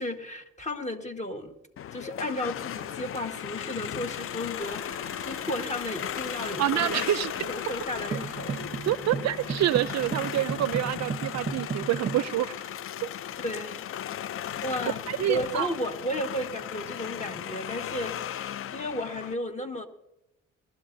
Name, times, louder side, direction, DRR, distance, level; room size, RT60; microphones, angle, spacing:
voice 1, 0.0-1.5 1.9-8.6 13.4-13.8 14.6-19.9, left 1 dB, 25° left, 5 dB, 1.6 m, -34 dB
sound 1, 1.8-19.3, left 10 dB, 45° left, 0.4 m, -36 dB
sound 2, 4.6-10.2, equal, 10° left, 1.4 m, -47 dB
voice 2, 6.6-7.5 8.9-12.6 15.1-15.7, right 13 dB, 65° right, 17 dB, 0.4 m, -27 dB
sound 3, 8.1-12.3, right 6 dB, 25° right, 0.8 m, -35 dB
21.5 x 12.5 x 2.7 m, 0.88 s
cardioid pair, 90°, 30 cm